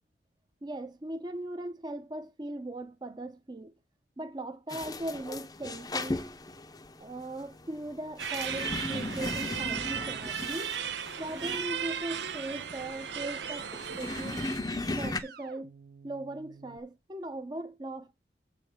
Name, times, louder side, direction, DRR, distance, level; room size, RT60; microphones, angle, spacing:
voice 1, 0.6-3.7 4.2-6.3 7.0-10.7 11.2-13.7 14.0-14.4 15.0-15.7 16.0-18.2, right 1 dB, 25° right, 0.7 m, -39 dB
sound 1, 4.7-15.2, left 2 dB, 20° left, 0.8 m, -37 dB
sound 2, 8.2-14.6, right 8 dB, 85° right, 0.8 m, -36 dB
sound 3, 9.6-16.8, right 7 dB, 55° right, 0.8 m, -50 dB
7.7 x 5.1 x 6.2 m
head